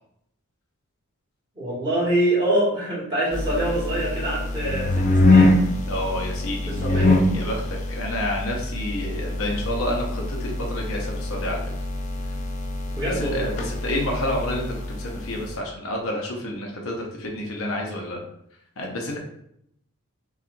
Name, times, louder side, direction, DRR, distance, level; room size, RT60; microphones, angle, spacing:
voice 1, 1.5-5.5 6.7-7.1 12.9-13.5, right 1 dB, 20° right, -8 dB, 1.5 m, -25 dB
sound 1, 3.3-15.5, left 2 dB, 35° left, 0.4 m, -24 dB
voice 2, 5.9-11.6 13.1-18.2 18.8-19.2, left 1 dB, 70° left, 0 dB, 0.7 m, -29 dB
5.7 x 2.4 x 2.6 m, 0.74 s
head